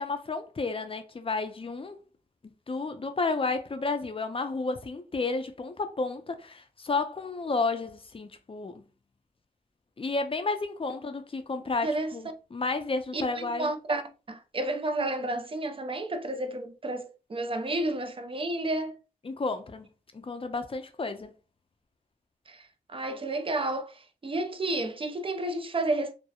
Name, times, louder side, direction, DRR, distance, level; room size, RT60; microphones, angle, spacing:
voice 1, 0.0-2.0 2.7-8.8 10.0-13.7 19.2-19.9 20.1-21.3, left 3 dB, 35° left, 0.5 m, -31 dB
voice 2, 11.8-12.1 13.1-14.0 14.3-19.0 22.5-22.6 22.9-26.1, right 2 dB, 35° right, 0.5 m, -31 dB
2.8 x 2.0 x 2.3 m
cardioid pair, 55°, 16 cm